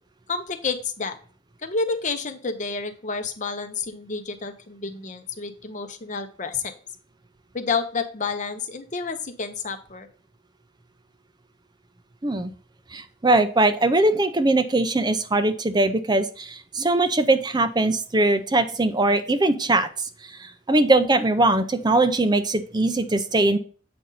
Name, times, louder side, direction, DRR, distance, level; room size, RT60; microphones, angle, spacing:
voice 1, 0.3-1.2 1.6-6.7 7.5-10.1, left 4 dB, 40° left, 8 dB, 0.8 m, -29 dB
voice 2, 12.9-20.1 20.4-23.6, right 2 dB, 20° right, 9 dB, 0.5 m, -21 dB
7.8 x 5.3 x 3.9 m, 0.41 s
head